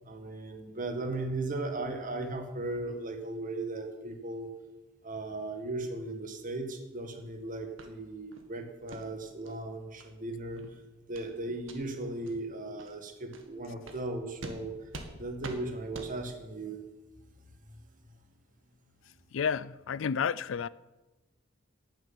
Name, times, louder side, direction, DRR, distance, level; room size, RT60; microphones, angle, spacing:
voice 1, 0.0-4.5 5.0-10.6 11.1-14.7 15.1-16.8, right 2 dB, 45° right, 1.9 m, -37 dB
sound 1, 7.8-7.9 8.3-8.5 8.9-9.0 9.4-9.6 10.0-10.1 10.5-10.7 11.1-11.3 11.6-11.8 12.2-12.3 12.8-12.9 13.3-13.4 13.8-14.0 14.4-14.6 14.9-15.1 15.4-15.6 15.9-16.1, right 2 dB, 85° right, 1.9 m, -44 dB
voice 2, 19.3-20.7, left 6 dB, 75° left, 0.4 m, -31 dB
12.0 x 7.7 x 9.7 m
head